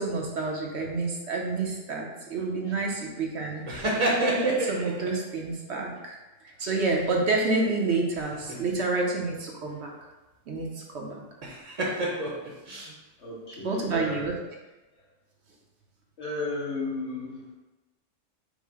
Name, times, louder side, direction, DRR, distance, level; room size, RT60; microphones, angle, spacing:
voice 1, 0.0-6.2 6.6-9.9 10.5-11.2 13.6-14.3, right 3 dB, 65° right, 0 dB, 1.0 m, -29 dB
sound 1, 3.7-5.1 8.1-8.7 11.4-12.9, right 1 dB, 35° right, 0.8 m, -29 dB
voice 2, 13.2-14.2 14.9-15.0 16.2-17.5, left 2 dB, 65° left, -6 dB, 1.8 m, -35 dB
5.5 x 2.1 x 4.7 m, 1.1 s
omnidirectional pair, 1.3 m